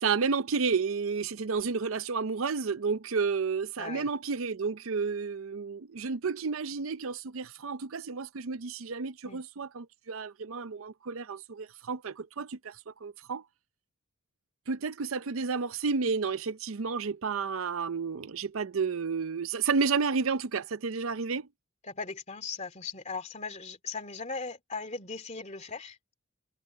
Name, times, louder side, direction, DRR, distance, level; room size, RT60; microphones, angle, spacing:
voice 1, 0.0-12.8 13.0-13.4 14.7-21.5, right 5 dB, 80° right, 0.6 m, -31 dB
voice 2, 3.8-4.1 9.2-9.4 21.8-26.0, left 4 dB, 35° left, 2.7 m, -38 dB
head